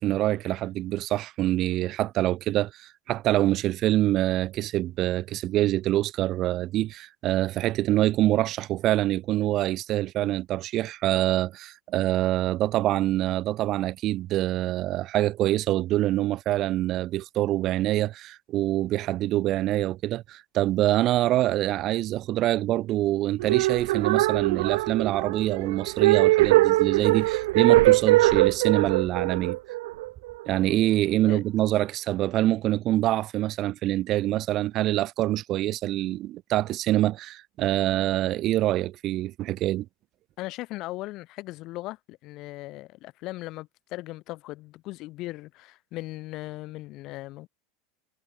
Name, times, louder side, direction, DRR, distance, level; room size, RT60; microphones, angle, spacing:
voice 1, 0.0-29.6 30.5-39.9, right 15 dB, 35° right, 1.1 m, -25 dB
sound 1, 23.4-30.6, right 19 dB, 75° right, 0.7 m, -22 dB
voice 2, 40.4-47.5, left 19 dB, 45° left, 2.1 m, -38 dB
supercardioid pair, 155°, 0 cm